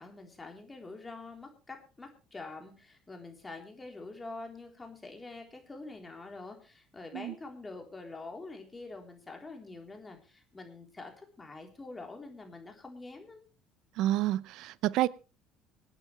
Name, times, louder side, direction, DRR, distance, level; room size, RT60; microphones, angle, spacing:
voice 1, 0.0-13.4, left 3 dB, 20° left, 3 dB, 3.8 m, -46 dB
voice 2, 14.0-15.1, right 14 dB, 70° right, 20 dB, 0.6 m, -29 dB
25.0 x 9.1 x 3.3 m, 0.34 s
hypercardioid pair, 70°, 0 cm